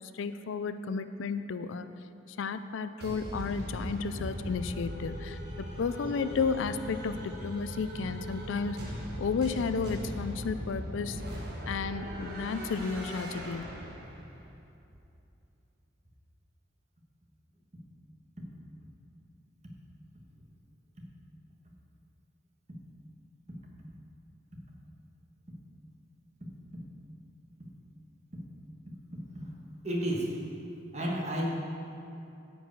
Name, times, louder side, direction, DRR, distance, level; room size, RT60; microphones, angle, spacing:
voice 1, 0.1-1.9 2.4-8.8 9.2-11.2 11.7-13.6, left 5 dB, 75° left, 11 dB, 0.4 m, -32 dB
sound 1, 3.0-14.4, equal, 50° right, 1.3 m, -39 dB
voice 2, 29.8-30.6 30.9-31.5, equal, 35° right, -2 dB, 1.3 m, -31 dB
10.0 x 4.6 x 7.9 m, 2.7 s
head